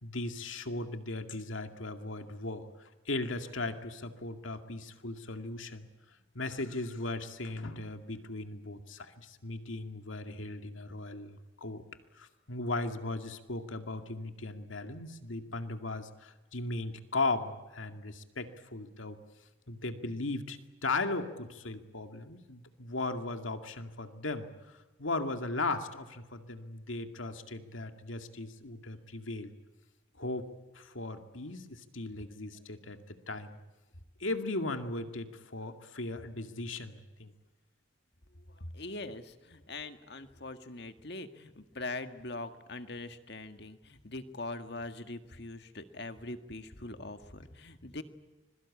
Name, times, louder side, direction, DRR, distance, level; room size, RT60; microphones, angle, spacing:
voice 1, 0.0-5.9 6.3-11.8 12.2-19.2 19.7-24.5 25.0-29.5 30.2-30.5 30.7-33.6 34.2-37.3, left 2 dB, 85° left, 6 dB, 2.3 m, -37 dB
voice 2, 38.4-48.0, left 2 dB, 55° left, 8 dB, 1.8 m, -42 dB
25.5 x 22.5 x 8.6 m, 1.1 s
head